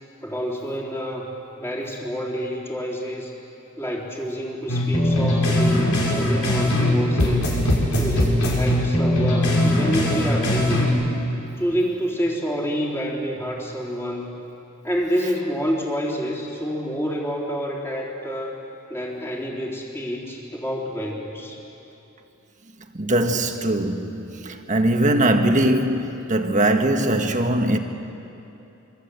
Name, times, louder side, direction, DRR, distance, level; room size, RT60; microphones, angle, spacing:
voice 1, 0.2-1.3 1.6-3.3 3.8-7.4 7.9-10.9 11.6-14.4 14.8-18.6 18.9-21.6, equal, 10° left, 3.6 m, -28 dB
sound 1, 4.7-6.9 7.2-10.9, left 1 dB, 75° left, 5.5 m, -20 dB
voice 2, 22.9-27.8, right 1 dB, 35° right, 1.6 m, -21 dB
27.0 x 24.5 x 8.3 m
head